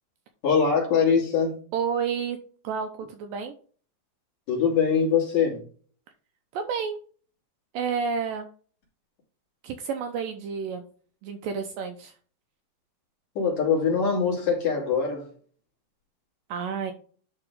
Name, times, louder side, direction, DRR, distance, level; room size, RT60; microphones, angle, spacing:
voice 1, 0.4-1.5 4.5-5.6 13.4-15.3, left 6 dB, 50° left, -3 dB, 3.7 m, -23 dB
voice 2, 1.7-2.4 2.6-3.5 6.5-7.0 7.7-8.5 9.6-10.8 11.2-12.1 16.5-16.9, right 6 dB, 80° right, 6 dB, 2.1 m, -30 dB
11.0 x 3.8 x 3.6 m, 0.42 s
omnidirectional pair, 4.5 m